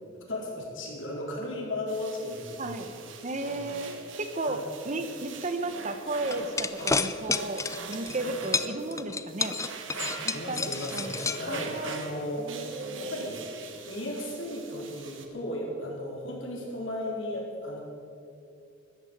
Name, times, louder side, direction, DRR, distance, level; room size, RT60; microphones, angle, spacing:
voice 1, 0.3-2.8 3.4-3.6 4.5-4.7 6.8-6.9 8.2-8.3 10.0-17.8, left 1 dB, 90° left, -3 dB, 4.3 m, -36 dB
sound 1, 1.9-15.3, right 5 dB, 80° right, 1.7 m, -43 dB
voice 2, 2.6-3.9 4.2-9.5 10.2-11.1 11.5-12.0 12.4-13.3, right 2 dB, 40° right, 9 dB, 1.0 m, -34 dB
sound 2, 6.3-8.2 8.5-12.0, left 4 dB, 15° left, 0.4 m, -30 dB
14.0 x 12.0 x 8.0 m, 2.7 s
head